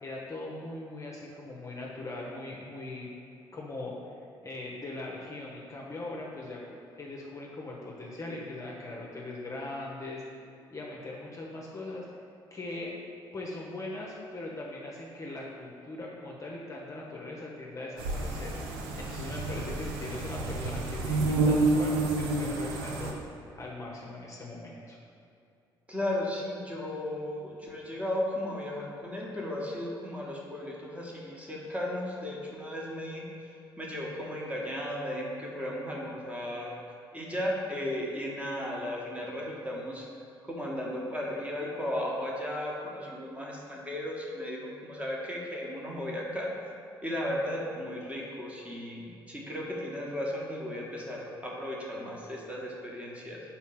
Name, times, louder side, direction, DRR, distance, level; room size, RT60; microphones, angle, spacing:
voice 1, 0.0-3.1 3.5-4.0 4.4-10.2 10.7-12.1 12.5-12.9 13.3-23.1 23.6-25.0, left 2 dB, 25° left, -3 dB, 0.9 m, -40 dB
sound 1, 18.0-23.1, right 2 dB, 70° right, 0.6 m, -29 dB
voice 2, 25.9-36.7 37.1-40.0 40.4-46.7 47.0-53.4, left 1 dB, 10° right, -3 dB, 1.3 m, -35 dB
4.3 x 4.2 x 5.7 m, 2.5 s
figure-of-eight pair, 45°, 12 cm